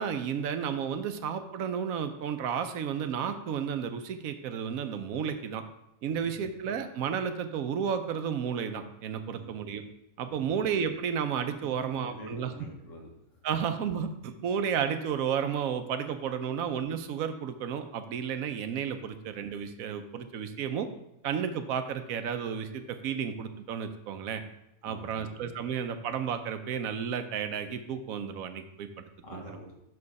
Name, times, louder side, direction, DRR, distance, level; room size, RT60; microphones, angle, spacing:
voice 1, 0.0-5.6 6.0-9.8 10.2-12.5 13.4-20.9 21.2-24.4 24.8-29.0 29.3-29.4, right 7 dB, 85° right, 8 dB, 1.1 m, -32 dB
voice 2, 6.1-6.5 9.2-9.5 10.3-10.5 11.6-13.5 24.9-25.3 25.6-25.7 29.2-29.7, equal, 65° left, 0 dB, 1.6 m, -47 dB
6.4 x 4.8 x 4.7 m, 0.83 s
omnidirectional pair, 1.4 m